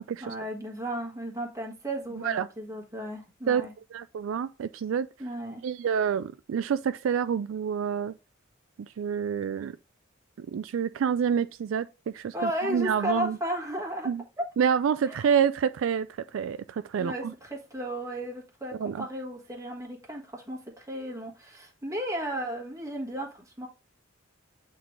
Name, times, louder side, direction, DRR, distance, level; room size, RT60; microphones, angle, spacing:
voice 1, 0.2-3.7 5.2-5.6 12.3-14.1 15.1-15.2 17.0-23.7, equal, 15° right, 1.5 m, -34 dB
voice 2, 3.9-5.1 5.6-8.1 8.8-9.7 10.4-13.4 14.0-14.2 14.6-16.1 16.3-17.3 18.8-19.1, right 7 dB, 75° right, 0.3 m, -28 dB
8.0 x 3.8 x 3.1 m
head